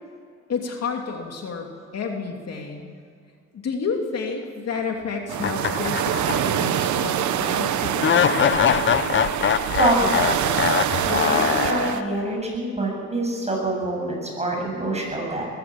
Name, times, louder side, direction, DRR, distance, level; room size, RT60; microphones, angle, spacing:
voice 1, 0.5-2.9 3.5-8.3 10.9-11.0, left 5 dB, 55° left, 2 dB, 2.9 m, -30 dB
sound 1, 5.3-12.0, right 10 dB, 70° right, 1.2 m, -25 dB
sound 2, 5.4-6.7 7.0-7.1 8.0-12.3, left 8 dB, 40° left, 0.8 m, -22 dB
voice 2, 9.8-10.4 11.1-15.5, right 1 dB, 20° right, 0 dB, 7.8 m, -25 dB
21.5 x 14.5 x 8.9 m, 2.2 s
cardioid pair, 90°, 30 cm